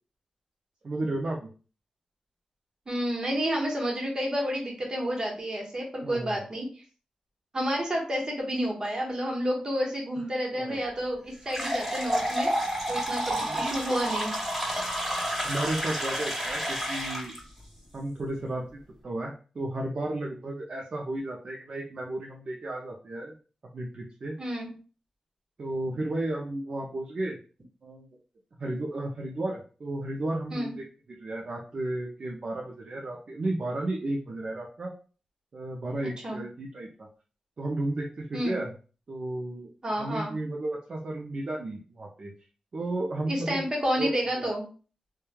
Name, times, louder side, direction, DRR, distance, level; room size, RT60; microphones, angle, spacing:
voice 1, 0.8-1.5 6.0-6.6 10.5-10.8 13.4-13.8 15.3-17.3 17.9-23.3 23.7-24.4 25.6-27.4 27.8-28.1 28.6-34.9 35.5-37.1 37.6-38.7 39.1-39.7 40.0-42.3 42.7-43.6 44.0-44.1, right 2 dB, 55° right, -1 dB, 0.4 m, -33 dB
voice 2, 2.9-6.7 7.5-12.5 12.9-14.3 24.4-24.7 30.5-30.7 36.2-36.4 38.3-38.6 39.8-40.3 43.3-44.7, equal, 40° right, -1 dB, 1.0 m, -30 dB
sound 1, 11.5-17.4, equal, 5° right, 1.4 m, -30 dB
3.1 x 2.2 x 2.2 m, 0.37 s
cardioid pair, 75°, 2 cm